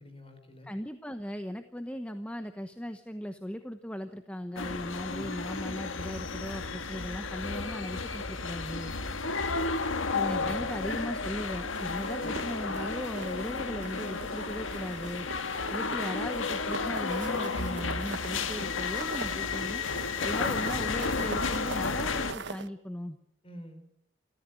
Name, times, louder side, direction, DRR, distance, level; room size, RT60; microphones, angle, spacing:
voice 1, 0.0-0.7 10.3-10.7 12.1-12.5 23.4-23.9, equal, 30° left, 7 dB, 4.5 m, -46 dB
voice 2, 0.6-8.9 10.1-15.3 15.7-19.8 20.2-23.2, equal, 5° left, 8 dB, 1.0 m, -38 dB
sound 1, 4.6-22.3, left 4 dB, 80° left, 1.7 m, -32 dB
sound 2, 11.7-13.5 13.8-14.4 14.7-22.7, right 4 dB, 60° right, 1.0 m, -43 dB
28.5 x 14.5 x 9.1 m, 0.78 s
head